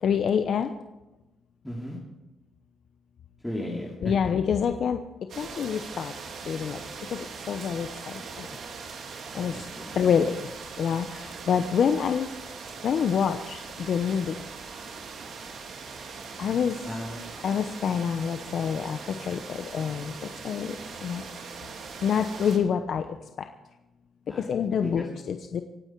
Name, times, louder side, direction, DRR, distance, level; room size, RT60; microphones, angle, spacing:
voice 1, 0.0-0.7 4.0-5.0 5.4-6.1 6.5-6.8 7.1-7.9 8.4-8.5 9.3-9.7 9.9-10.4 10.8-12.3 12.8-14.4 16.4-16.8 17.4-20.1 20.4-20.8 21.0-21.2 22.0-23.0 24.4-25.6, left 7 dB, 60° left, 7 dB, 0.9 m, -26 dB
voice 2, 1.6-2.0 3.4-4.1 9.5-9.9 16.8-17.2 24.3-24.5 24.8-25.1, left 1 dB, 5° left, -4 dB, 2.9 m, -35 dB
sound 1, 5.3-22.6, right 5 dB, 60° right, 2.5 m, -41 dB
26.0 x 9.1 x 4.7 m, 1.0 s
cardioid pair, 90°, 0 cm